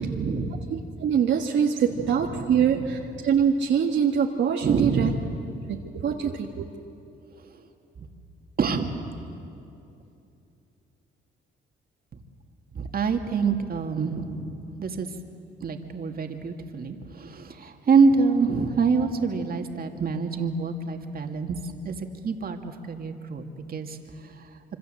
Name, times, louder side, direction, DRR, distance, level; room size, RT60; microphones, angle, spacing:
voice 1, 0.0-0.6 1.9-2.8 4.6-5.4 8.0-8.1 8.6-8.9 12.7-15.1 15.6-24.0 24.2-24.4, right 5 dB, 50° right, 4 dB, 2.3 m, -26 dB
voice 2, 0.7-5.1 5.7-6.7, right 7 dB, 65° right, 0 dB, 1.6 m, -24 dB
26.5 x 24.5 x 7.8 m, 2.7 s
cardioid pair, 90°, 20 cm